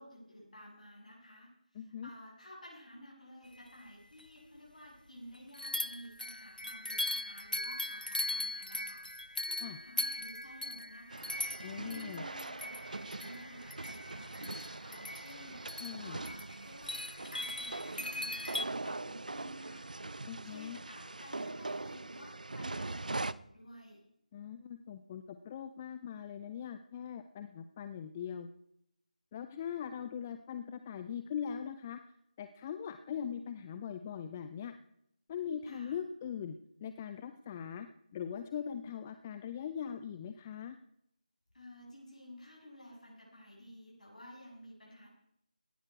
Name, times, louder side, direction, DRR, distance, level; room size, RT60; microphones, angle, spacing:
voice 1, 0.0-17.0 17.3-20.0 20.4-24.0 35.7-36.0 41.5-45.1, equal, 60° left, -4 dB, 7.0 m, -53 dB
voice 2, 1.7-2.1 9.6-9.8 11.6-12.2 15.7-16.2 20.2-20.8 24.3-28.5 29.3-32.0 32.4-34.7 35.3-36.6 36.8-37.9 38.1-40.8, left 8 dB, 15° left, 10 dB, 0.4 m, -41 dB
sound 1, 3.9-4.0 4.2-4.3 5.5-18.6, left 1 dB, 90° left, 0.6 m, -40 dB
sound 2, 11.1-23.3, right 2 dB, 65° right, 0.6 m, -42 dB
17.5 x 12.0 x 4.7 m, 0.76 s
figure-of-eight pair, 160°, 5 cm